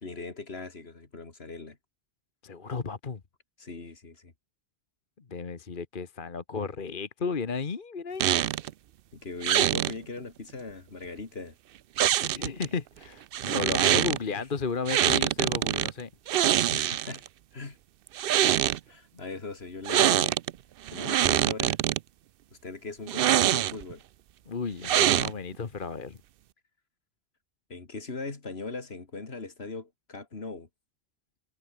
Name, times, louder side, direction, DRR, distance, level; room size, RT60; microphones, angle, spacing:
voice 1, 0.0-1.8 3.6-4.3 9.1-11.6 14.4-14.5 16.7-17.2 17.5-17.8 18.9-20.4 20.9-21.8 22.6-24.0 27.7-30.7, left 3 dB, 75° left, 2.7 m, -39 dB
voice 2, 2.4-3.2 5.3-8.4 12.2-16.1 24.5-26.2, left 5 dB, 55° left, 1.5 m, -33 dB
sound 1, 8.2-8.7 9.4-9.9 12.0-12.7 13.3-14.2 14.9-15.9 16.3-17.3 18.1-18.8 19.9-20.5 20.9-22.0 23.1-23.9 24.8-25.6, right 12 dB, 65° right, 0.7 m, -24 dB
omnidirectional pair, 1.1 m